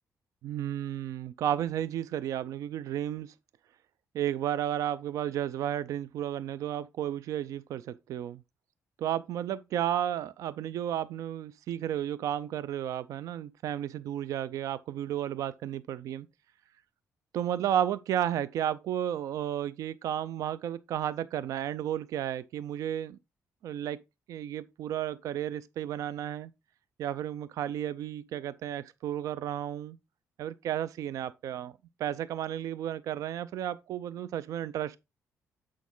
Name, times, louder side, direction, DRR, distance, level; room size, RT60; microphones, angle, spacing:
voice 1, 0.4-3.3 4.1-8.4 9.0-16.3 17.3-23.2 23.6-24.0 24.3-26.5 27.0-30.0 30.4-31.7 32.0-35.0, right 11 dB, 75° right, 0.5 m, -33 dB
8.4 x 4.7 x 3.8 m
cardioid pair, 180°, 6 cm